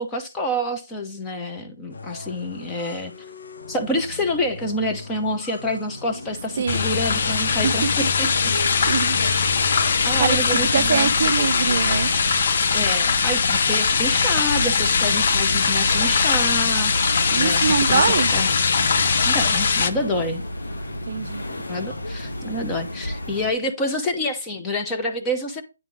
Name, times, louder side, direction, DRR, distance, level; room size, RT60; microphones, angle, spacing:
voice 1, 0.0-3.1 3.7-8.5 10.1-11.2 12.7-16.9 17.4-18.5 19.2-20.4 21.7-25.6, left 1 dB, 10° left, 0.9 m, -27 dB
sound 1, 1.9-10.8, left 3 dB, 70° left, 1.2 m, -39 dB
sound 2, 6.1-23.5, left 1 dB, 90° left, 1.8 m, -33 dB
voice 2, 6.6-6.9 7.6-7.7 8.0-8.1 8.9-9.2 10.2-10.4 10.7-12.1 17.3-18.3 21.1-21.4, right 6 dB, 45° right, 0.4 m, -23 dB
sound 3, 6.7-19.9, left 5 dB, 45° left, 0.7 m, -21 dB
9.5 x 3.6 x 4.8 m
hypercardioid pair, 165°, 0 cm